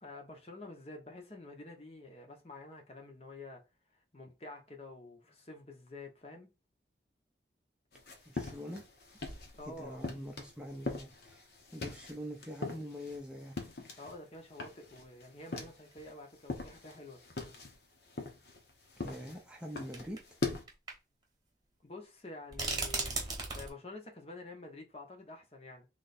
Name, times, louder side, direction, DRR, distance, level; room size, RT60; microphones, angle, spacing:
voice 1, 0.0-3.6 4.1-6.5 9.5-10.1 14.0-17.2 21.8-23.2 23.5-25.9, left 2 dB, 35° left, 0.9 m, -48 dB
sound 1, 7.9-9.6 10.0-14.2 14.5-16.1 16.4-20.6, left 3 dB, 65° left, 1.0 m, -41 dB
sound 2, 8.0-8.1 8.8-8.9 9.2-10.2 10.8-10.9 12.7-12.8 14.1-14.2 14.3-14.4 15.5-15.6 15.9-16.0 17.4-17.5 19.0-19.1 19.9-20.3 20.7-20.9 21.2-21.3 22.5-23.7, right 3 dB, 25° right, 1.1 m, -38 dB
voice 2, 8.3-8.8 9.6-11.5 11.7-13.6 19.0-20.2, equal, 5° right, 0.6 m, -44 dB
3.3 x 3.0 x 4.1 m
head